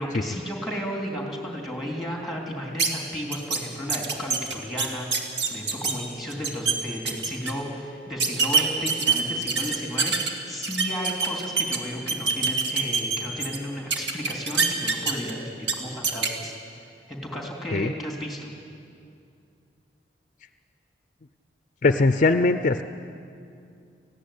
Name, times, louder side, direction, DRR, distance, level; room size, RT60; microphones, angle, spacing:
voice 1, 0.0-16.5 17.1-18.5, equal, ahead, 0 dB, 3.1 m, -33 dB
sound 1, 2.8-2.9 3.3-3.6 3.9-5.9 6.3-6.7 7.1-7.5 8.2-10.3 10.6-11.8 12.1-13.6 13.9-15.3 15.6-15.7 16.0-16.3, right 5 dB, 70° right, 2.0 m, -24 dB
voice 2, 21.8-22.8, left 3 dB, 45° left, 10 dB, 0.5 m, -20 dB
18.0 x 15.5 x 10.0 m, 2.5 s
head